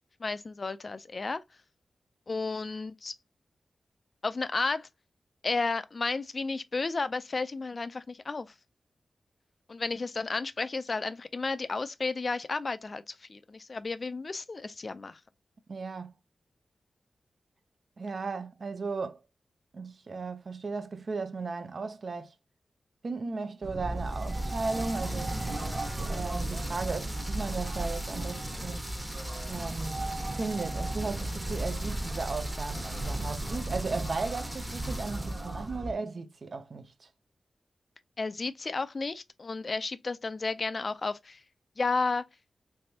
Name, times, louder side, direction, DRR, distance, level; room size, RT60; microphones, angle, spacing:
voice 1, 0.2-1.4 2.3-3.1 4.2-4.9 5.4-8.5 9.7-15.2 38.2-41.4 41.8-42.2, left 3 dB, 50° left, 0.3 m, -32 dB
voice 2, 15.7-16.1 18.0-19.2 19.7-22.3 23.0-25.4 26.1-28.8 29.5-30.1 30.3-37.1, right 4 dB, 60° right, 0.5 m, -36 dB
sound 1, 23.6-35.9, right 1 dB, 45° right, 1.1 m, -35 dB
sound 2, 24.0-35.7, equal, 5° right, 0.7 m, -43 dB
3.3 x 3.3 x 2.7 m
cardioid pair, 65°, 0 cm